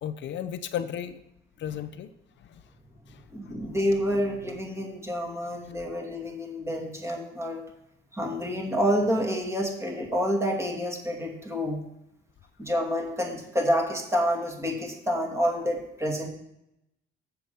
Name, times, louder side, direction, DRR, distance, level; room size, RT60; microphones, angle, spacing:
voice 1, 0.0-1.2 1.6-2.1 2.4-2.6 3.1-3.3, left 9 dB, 65° left, 12 dB, 0.6 m, -34 dB
voice 2, 3.3-7.6 8.1-11.8 12.6-16.3, equal, 15° right, 1 dB, 2.3 m, -28 dB
7.4 x 5.8 x 6.9 m, 0.84 s
cardioid pair, 90°, 20 cm